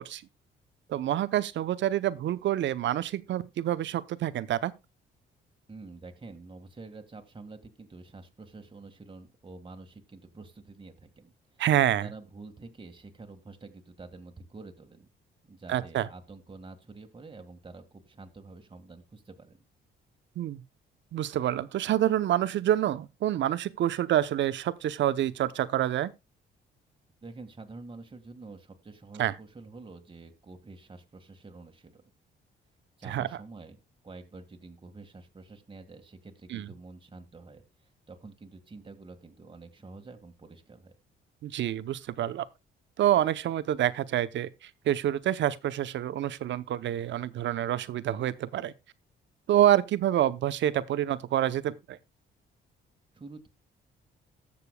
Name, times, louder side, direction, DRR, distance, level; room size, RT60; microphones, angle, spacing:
voice 1, 0.9-4.7 11.6-12.1 15.7-16.1 20.4-20.6 21.1-26.1 29.2-29.3 33.1-33.3 36.5-36.7 41.4-42.4 43.0-48.7 49.5-52.0, right 12 dB, 65° right, 0.7 m, -27 dB
voice 2, 5.7-11.6 12.0-15.1 15.5-19.6 27.2-32.0 33.0-33.8 34.0-37.6 38.1-40.9 53.1-53.5, right 3 dB, 25° right, 1.7 m, -48 dB
19.0 x 6.8 x 2.2 m
cardioid pair, 90°, 20 cm